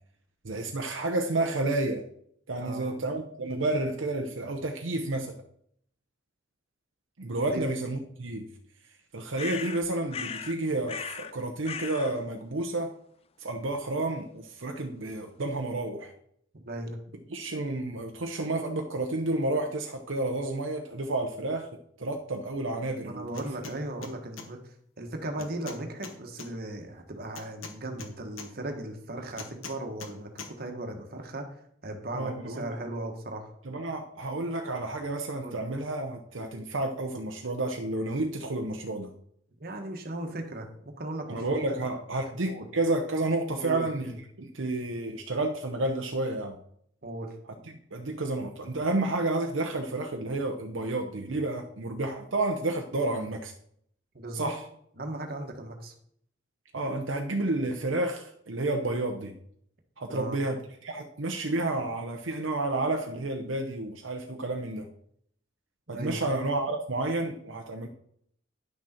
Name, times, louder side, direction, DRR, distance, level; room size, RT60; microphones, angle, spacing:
voice 1, 0.4-2.0 2.5-5.4 7.2-8.5 9.1-12.9 13.4-16.1 17.3-21.7 22.0-23.3 32.1-32.7 33.6-39.1 41.3-46.6 47.7-53.5 54.3-54.6 56.7-59.3 60.0-64.9 65.9-67.9, right 2 dB, 75° right, 3 dB, 0.8 m, -30 dB
voice 2, 2.6-2.9 7.5-7.6 16.5-17.0 23.0-33.5 35.4-35.6 39.6-40.7 41.0-41.6 42.1-42.2 42.5-42.7 43.6-44.2 47.0-47.3 54.1-54.5 55.0-55.9 60.1-60.4 65.9-66.2, right 1 dB, 50° right, 4 dB, 1.4 m, -37 dB
sound 1, 9.4-10.6 10.9-11.3 11.6-12.2, left 6 dB, 30° left, 0.3 m, -37 dB
sound 2, 23.3-23.8 24.0-24.5 25.4-26.5 27.4-28.5 29.4-30.1 30.4-30.5, left 5 dB, 90° left, 1.2 m, -42 dB
10.0 x 6.2 x 4.4 m, 0.66 s
head